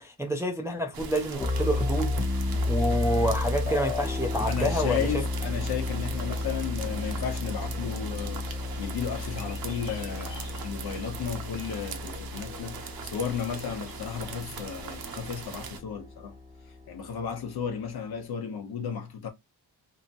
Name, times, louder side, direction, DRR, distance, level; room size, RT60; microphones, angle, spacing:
voice 1, 0.0-5.1, equal, 5° right, 0.3 m, -28 dB
sound 1, 0.9-15.8, right 6 dB, 60° right, 0.7 m, -41 dB
sound 2, 1.4-17.3, left 2 dB, 20° left, 0.9 m, -32 dB
voice 2, 4.4-16.3 16.9-19.3, left 7 dB, 60° left, 0.9 m, -34 dB
sound 3, 6.0-14.9, left 5 dB, 90° left, 1.4 m, -52 dB
2.9 x 2.7 x 2.5 m
wide cardioid pair, 160°, 41 cm